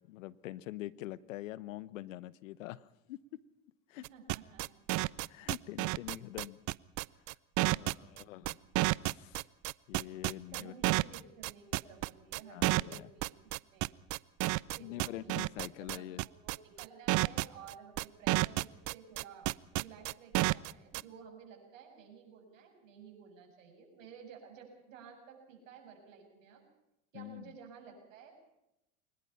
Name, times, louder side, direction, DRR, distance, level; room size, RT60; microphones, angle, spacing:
voice 1, 0.0-3.2 3.9-4.0 5.3-6.6 7.7-8.6 9.0-9.4 9.9-10.8 12.5-13.1 14.8-16.2 27.1-27.4, left 15 dB, 75° left, 20 dB, 1.0 m, -45 dB
sound 1, 4.0-21.0, right 22 dB, 50° right, 0.6 m, -30 dB
voice 2, 4.1-4.8 5.4-5.5 7.7-8.5 10.5-13.3 13.7-13.9 14.8-26.6 27.1-28.3, right 6 dB, 75° right, 3 dB, 7.1 m, -54 dB
23.0 x 20.0 x 5.7 m, 0.90 s
hypercardioid pair, 80°, 39 cm